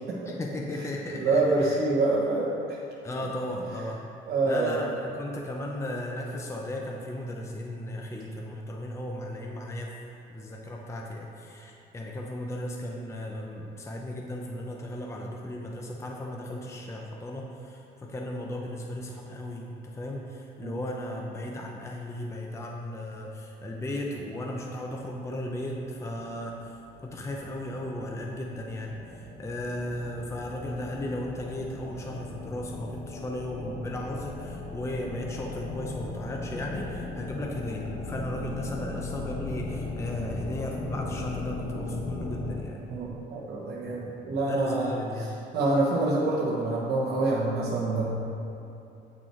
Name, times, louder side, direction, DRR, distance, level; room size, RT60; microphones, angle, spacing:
voice 1, 0.2-1.8 3.0-4.1 4.4-9.9 10.3-26.8 27.0-42.8 43.9-45.3, left 1 dB, 15° left, -1 dB, 0.6 m, -36 dB
voice 2, 1.1-2.8 4.3-4.8 20.6-20.7 42.9-44.9 45.5-48.0, right 2 dB, 60° right, -6 dB, 1.3 m, -26 dB
sound 1, 26.0-42.6, left 3 dB, 80° left, 2.0 m, -38 dB
9.0 x 6.3 x 4.5 m, 2.8 s
cardioid pair, 145°, 19 cm